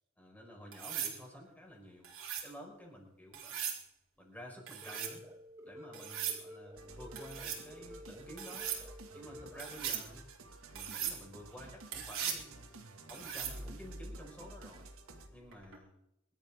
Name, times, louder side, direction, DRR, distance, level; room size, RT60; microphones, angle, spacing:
voice 1, 0.2-2.1 2.4-3.8 4.2-5.3 5.6-8.7 9.1-10.2 10.7-12.6 13.1-14.9 15.3-15.9, equal, 5° left, -1 dB, 5.3 m, -51 dB
sound 1, 0.7-1.2 2.0-2.5 3.3-3.8 4.7-5.2 5.9-6.4 7.2-7.6 8.4-8.8 9.6-10.1 10.8-11.2 11.9-12.4 13.1-13.6 15.5-15.8, right 9 dB, 65° right, 4.2 m, -39 dB
sound 2, 4.8-9.8, left 1 dB, 15° right, 2.6 m, -52 dB
sound 3, 6.7-15.3, right 1 dB, 80° right, 2.2 m, -51 dB
25.0 x 13.0 x 3.7 m, 0.82 s
head